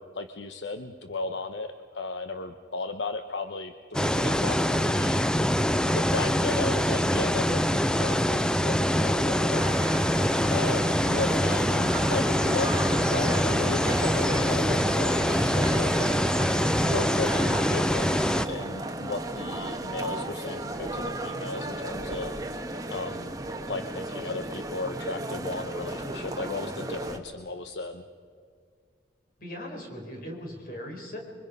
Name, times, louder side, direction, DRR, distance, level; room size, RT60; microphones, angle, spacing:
voice 1, 0.0-5.5 5.9-9.7 10.5-22.6 22.9-23.3 23.7-28.0, left 3 dB, 75° left, 7 dB, 0.9 m, -35 dB
sound 1, 3.9-18.5, equal, 5° left, 0.5 m, -24 dB
sound 2, 9.6-27.2, right 1 dB, 20° right, 1.2 m, -34 dB
voice 2, 29.4-31.2, equal, 50° left, 1 dB, 4.6 m, -39 dB
26.0 x 24.0 x 5.4 m, 2.2 s
head